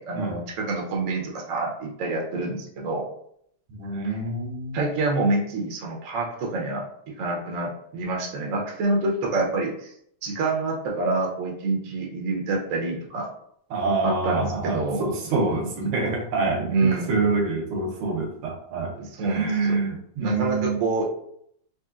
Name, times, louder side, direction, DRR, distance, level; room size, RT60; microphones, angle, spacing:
voice 1, 0.0-3.1 4.0-4.1 4.7-6.8 7.2-9.9 10.2-13.3 14.0-15.7 16.7-17.2 19.0-19.8 20.2-21.0, right 3 dB, 60° right, -1 dB, 0.8 m, -27 dB
voice 2, 3.7-4.8 13.7-16.8 17.1-18.9 19.2-20.8, right 3 dB, 80° right, 2 dB, 1.7 m, -26 dB
4.2 x 3.1 x 2.4 m, 0.69 s
omnidirectional pair, 2.4 m